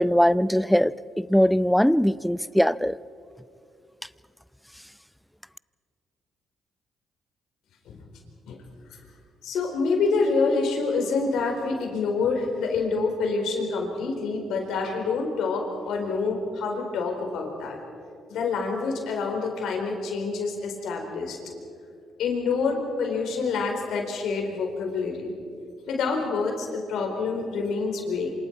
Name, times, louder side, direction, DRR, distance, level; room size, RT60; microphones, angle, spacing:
voice 1, 0.0-3.0, equal, 5° left, 0.6 m, -21 dB
voice 2, 9.4-17.8 18.3-21.4 22.2-25.3 25.9-28.3, left 4 dB, 75° left, 4.5 m, -27 dB
27.0 x 26.5 x 4.8 m
supercardioid pair, 65°, 0 cm